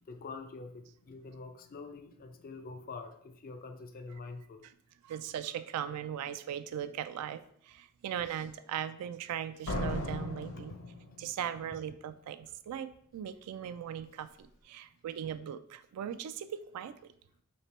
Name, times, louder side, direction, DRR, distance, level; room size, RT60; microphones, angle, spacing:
voice 1, 0.0-4.6 10.7-10.8, left 3 dB, 40° left, 7 dB, 0.4 m, -45 dB
voice 2, 5.0-10.7 11.2-17.1, right 9 dB, 90° right, 12 dB, 0.3 m, -39 dB
Slam, 9.7-11.6, left 1 dB, 60° left, 0.7 m, -36 dB
3.3 x 2.9 x 4.2 m, 0.66 s
head